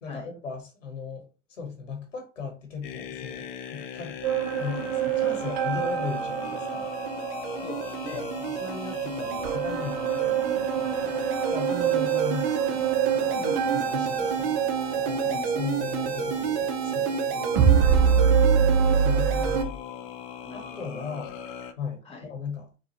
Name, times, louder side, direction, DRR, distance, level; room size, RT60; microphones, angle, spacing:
voice 1, 0.0-4.2 4.6-6.9 8.1-13.4 13.9-14.6 15.0-18.3 18.9-19.7 20.5-21.4 21.8-22.7, left 5 dB, 85° left, 1.1 m, -38 dB
sound 1, 2.8-21.7, left 6 dB, 45° left, 0.6 m, -39 dB
sound 2, 4.2-19.6, right 7 dB, 45° right, 0.7 m, -25 dB
voice 2, 7.6-8.3 13.3-14.0 15.2-15.5 20.4-21.1 22.0-22.3, left 2 dB, 15° left, 1.4 m, -40 dB
4.0 x 2.3 x 3.0 m
figure-of-eight pair, 85°, 37 cm